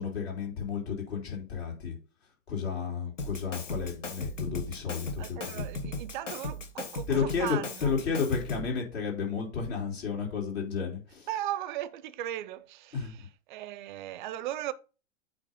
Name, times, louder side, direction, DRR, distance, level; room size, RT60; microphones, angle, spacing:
voice 1, 0.0-2.0 2.5-5.7 7.1-11.3 12.9-13.1, left 6 dB, 55° left, 3.5 m, -32 dB
Drum kit, 3.2-8.8, left 2 dB, 70° left, 1.4 m, -37 dB
voice 2, 5.2-7.9 11.3-13.2 13.5-14.7, right 13 dB, 40° right, 0.6 m, -37 dB
8.4 x 3.0 x 5.3 m
figure-of-eight pair, 105°, 38 cm